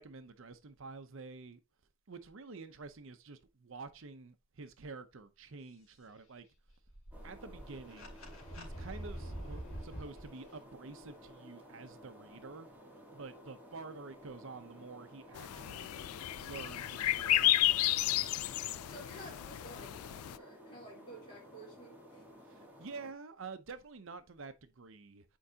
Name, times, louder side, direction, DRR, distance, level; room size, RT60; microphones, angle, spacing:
voice 1, 0.0-1.6 2.1-6.5 7.2-8.2 8.5-12.7 13.1-15.9 16.4-17.9 22.4-25.4, right 4 dB, 60° right, 0.7 m, -49 dB
sound 1, 6.7-10.3, right 1 dB, 70° left, 2.5 m, -45 dB
sound 2, 7.1-23.1, equal, 10° right, 1.4 m, -55 dB
sound 3, 15.3-20.4, left 14 dB, 90° left, 0.4 m, -32 dB
voice 2, 18.8-22.2, right 1 dB, 20° left, 3.3 m, -52 dB
9.0 x 4.7 x 2.8 m
head